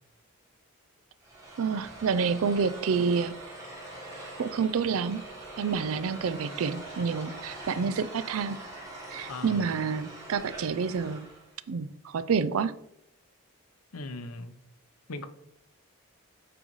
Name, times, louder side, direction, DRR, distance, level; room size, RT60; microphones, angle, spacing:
sound 1, 1.2-11.5, right 1 dB, 15° right, 1.3 m, -43 dB
voice 1, 1.6-3.3 4.4-5.2 5.6-8.6 9.1-11.3 11.7-12.7, right 5 dB, 70° right, 0.4 m, -28 dB
voice 2, 9.3-9.7 13.9-14.6 15.1-15.3, left 2 dB, 85° left, 0.7 m, -39 dB
8.9 x 3.9 x 3.1 m
head